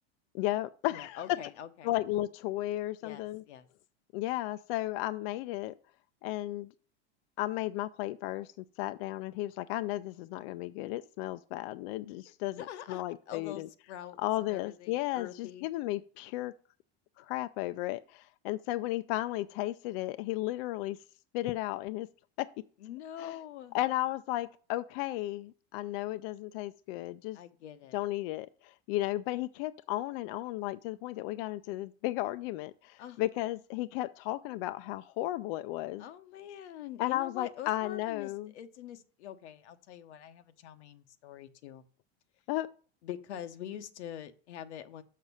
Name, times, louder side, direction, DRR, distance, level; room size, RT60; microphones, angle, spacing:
voice 1, 0.3-1.4 1.8-3.4 4.1-5.7 6.2-6.7 7.4-13.7 14.2-16.5 17.2-21.0 21.3-22.1 22.4-22.5 23.2-23.4 23.7-27.4 27.9-36.1 37.0-38.5 42.5-42.7, left 16 dB, 60° left, 0.4 m, -34 dB
voice 2, 0.9-1.9 3.0-3.7 12.4-15.7 22.8-23.8 27.3-28.0 33.0-33.2 36.0-41.8 43.0-45.0, left 10 dB, 90° left, 1.0 m, -45 dB
6.6 x 5.9 x 5.4 m
supercardioid pair, 130°, 33 cm